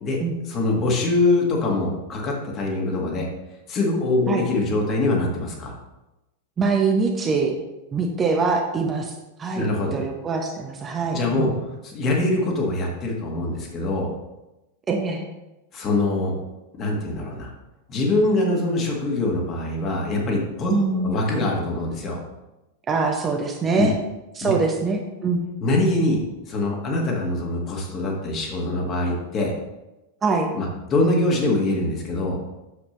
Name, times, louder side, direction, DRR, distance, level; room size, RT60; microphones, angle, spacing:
voice 1, 0.5-3.3 3.7-5.7 9.5-9.9 11.1-11.5 11.8-14.1 15.7-16.4 16.8-17.5 17.9-20.7 21.0-22.2 23.8-23.9 24.4-24.5 25.6-26.2 26.5-29.5 30.5-32.4, left 2 dB, 30° left, 0 dB, 1.8 m, -23 dB
voice 2, 6.6-7.5 7.9-9.1 9.4-11.6 14.9-15.2 20.7-21.1 22.9-23.9 24.3-25.4 30.2-30.5, right 4 dB, 20° right, 1 dB, 0.9 m, -23 dB
8.2 x 7.1 x 3.2 m, 1.0 s
figure-of-eight pair, 90°, 0 cm